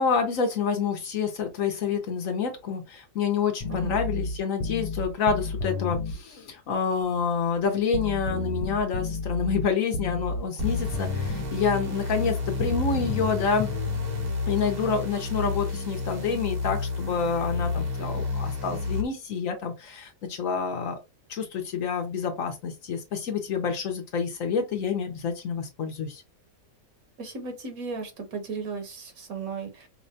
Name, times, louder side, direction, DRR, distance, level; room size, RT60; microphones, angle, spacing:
voice 1, 0.0-13.7 14.5-20.9 21.3-26.2, left 6 dB, 65° left, 1.0 m, -28 dB
sound 1, 3.6-6.2 7.9-11.6 12.6-14.3, left 3 dB, 85° left, 1.2 m, -31 dB
sound 2, 10.6-19.0, left 3 dB, 40° right, 0.6 m, -31 dB
voice 2, 27.2-29.9, right 5 dB, 65° right, 1.2 m, -35 dB
4.8 x 2.1 x 2.6 m
omnidirectional pair, 1.7 m